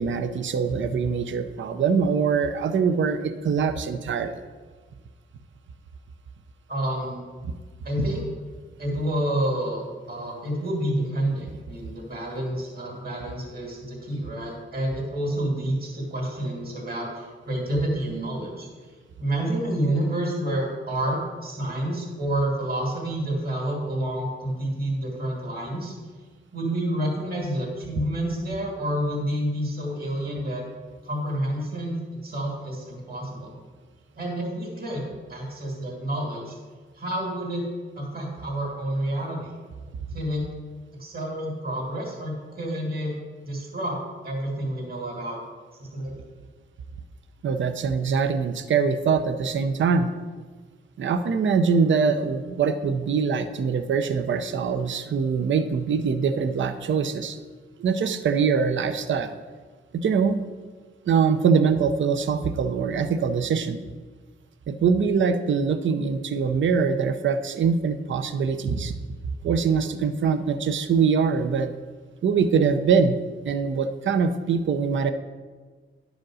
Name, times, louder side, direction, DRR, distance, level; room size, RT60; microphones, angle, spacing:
voice 1, 0.0-4.3 47.4-50.1 51.0-57.4 57.8-59.3 59.9-60.4 61.1-63.8 64.7-68.9 69.4-71.7 72.2-73.2 73.4-75.1, right 5 dB, 65° right, 9 dB, 0.6 m, -23 dB
voice 2, 6.7-7.3 7.8-8.3 8.8-18.7 19.2-26.0 26.5-30.6 31.0-32.0 32.2-33.5 34.2-35.0 35.3-36.6 36.9-37.6 37.9-39.5 40.1-40.5 41.0-43.2 43.4-44.0 44.2-45.4 45.8-46.2, right 1 dB, 45° right, -1 dB, 2.5 m, -29 dB
10.5 x 5.1 x 6.3 m, 1.4 s
wide cardioid pair, 105°, 21 cm